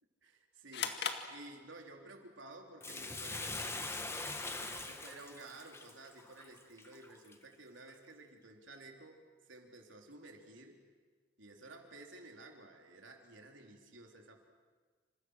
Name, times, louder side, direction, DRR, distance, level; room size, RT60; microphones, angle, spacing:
voice 1, 0.2-10.8 11.4-14.4, right 2 dB, 85° right, 2 dB, 3.9 m, -54 dB
sound 1, 0.7-2.1, left 6 dB, 60° left, 2.0 m, -39 dB
Bathtub (filling or washing), 2.8-7.3 7.9-8.0, left 2 dB, 15° left, 1.7 m, -42 dB
28.5 x 26.5 x 6.6 m, 1.5 s
head